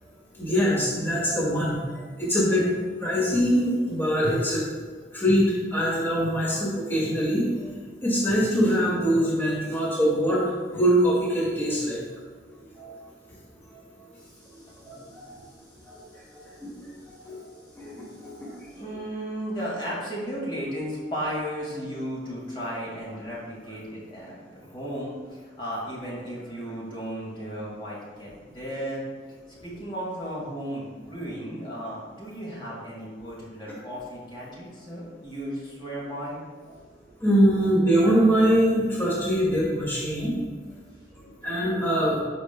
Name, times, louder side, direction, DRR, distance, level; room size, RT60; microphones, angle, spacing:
voice 1, 0.3-1.8 2.2-4.7 5.1-7.4 8.0-10.4 10.7-12.0 12.8-13.0 14.5-15.0 16.6-16.7 17.2-17.5 17.8-18.6 37.2-40.3 41.4-42.2, equal, 15° left, -7 dB, 2.0 m, -23 dB
voice 2, 14.2-15.5 15.9-16.0 16.4-16.6 17.1-17.3 18.1-18.2 18.7-29.0 29.6-36.4, equal, 30° left, -6 dB, 2.1 m, -35 dB
14.5 x 5.4 x 2.3 m, 1.5 s
head